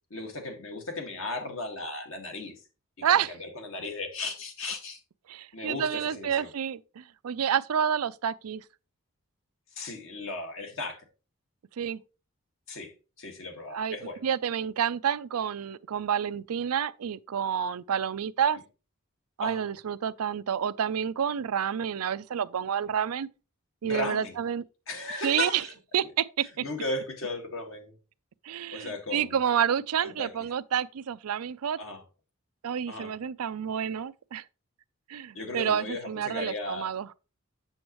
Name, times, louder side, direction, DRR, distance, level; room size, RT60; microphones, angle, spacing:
voice 1, 0.1-2.6 3.0-5.0 5.5-6.5 9.7-11.1 12.7-12.9 13.2-14.3 19.4-19.7 23.8-24.4 24.9-25.7 26.0-26.1 26.4-28.0 28.7-29.4 30.0-30.3 31.8-32.0 32.9-33.1 35.3-36.9, left 2 dB, 60° left, 1.8 m, -36 dB
voice 2, 3.0-3.3 5.3-8.6 11.8-12.0 13.7-14.0 14.2-18.6 19.4-23.3 23.8-24.6 25.2-25.6 25.9-26.6 28.4-31.8 32.6-34.4 35.1-37.1, right 8 dB, 85° right, 0.4 m, -29 dB
7.8 x 7.1 x 3.0 m
head